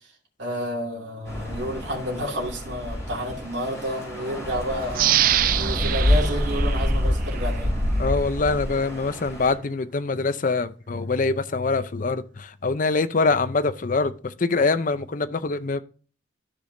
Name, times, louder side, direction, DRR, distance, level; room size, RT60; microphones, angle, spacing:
voice 1, 0.4-5.1 5.6-7.8, equal, 75° right, 2.5 m, -30 dB
sound 1, 1.3-9.5, left 1 dB, 15° left, 3.9 m, -27 dB
sound 2, 4.9-7.6 8.1-8.2, right 12 dB, 50° right, 0.3 m, -25 dB
voice 2, 8.0-15.8, left 3 dB, 45° left, 0.5 m, -24 dB
13.0 x 5.2 x 2.6 m
head